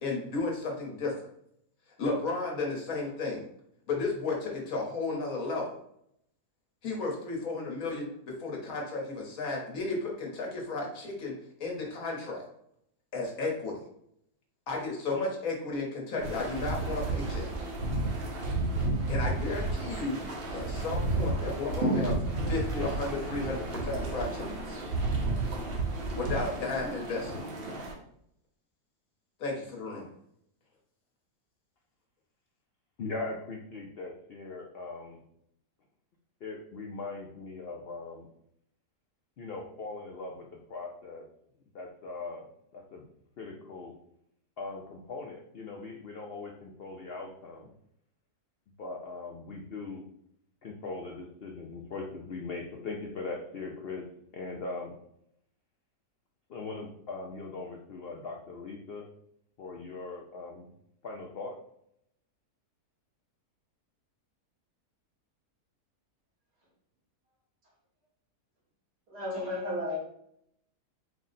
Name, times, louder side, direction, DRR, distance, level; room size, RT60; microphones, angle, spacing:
voice 1, 0.0-1.1 2.0-3.4 3.9-5.8 6.8-11.3 11.6-12.4 13.1-13.8 14.7-17.5 19.1-20.2 20.5-22.1 22.5-24.8 26.1-27.4 29.4-30.0, left 3 dB, 60° left, -1 dB, 1.4 m, -33 dB
sound 1, 16.2-27.9, right 2 dB, 50° right, 0.8 m, -32 dB
voice 2, 33.0-35.2 36.4-38.3 39.4-41.3 41.7-42.4 42.7-43.0 43.4-43.9 44.6-47.7 48.8-50.0 50.6-54.0 54.3-54.9 56.5-59.1 59.6-60.7 61.0-61.5, left 3 dB, 80° left, 0 dB, 0.5 m, -40 dB
voice 3, 69.1-70.0, left 2 dB, 90° right, -5 dB, 2.3 m, -33 dB
4.5 x 2.1 x 3.9 m, 0.72 s
omnidirectional pair, 1.7 m